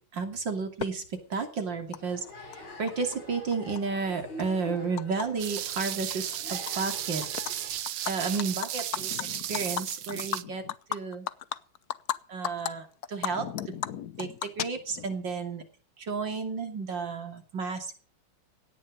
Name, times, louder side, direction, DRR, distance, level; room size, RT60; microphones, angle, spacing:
voice 1, 0.1-1.0 1.3-2.2 2.8-7.8 8.1-9.2 9.5-10.6 10.9-11.3 12.3-13.4 14.2-15.6 16.0-17.9, right 4 dB, 65° right, 5 dB, 3.4 m, -32 dB
Animal, 0.8-0.9 1.9-2.0 2.3-3.2 3.5-5.3 5.6-5.8 6.1-6.9 7.2-7.5 7.9-12.2 12.4-12.7 13.0-15.1, left 10 dB, 60° left, 1.2 m, -35 dB
sound 1, 1.9-7.7, left 1 dB, 80° left, 6.5 m, -45 dB
sound 2, 5.4-10.4, right 12 dB, 85° right, 1.7 m, -34 dB
17.5 x 10.5 x 5.3 m, 0.40 s
omnidirectional pair, 2.2 m